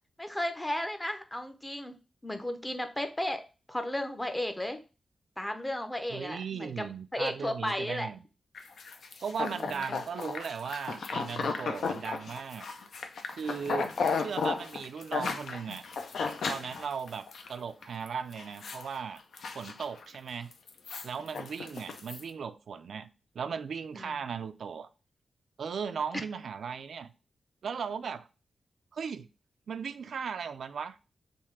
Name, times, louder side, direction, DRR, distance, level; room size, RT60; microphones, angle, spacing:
voice 1, 0.2-1.9 2.2-3.4 3.7-4.8 5.4-6.8 7.1-8.1 9.5-10.0 13.7-13.8 24.0-24.2, left 1 dB, 10° left, 0.6 m, -34 dB
voice 2, 6.1-8.2 9.2-12.7 13.3-13.9 14.2-15.9 16.5-19.2 19.5-20.5 21.0-23.1 23.4-24.9 25.6-27.1 27.6-28.3 28.9-29.3 29.7-31.0, right 6 dB, 75° right, 0.3 m, -37 dB
sound 1, 8.5-17.5 17.8-18.1 18.3-18.9 19.2-20.2 20.5-22.2, left 5 dB, 80° left, 0.6 m, -34 dB
3.5 x 2.7 x 4.5 m
wide cardioid pair, 105°, 0 cm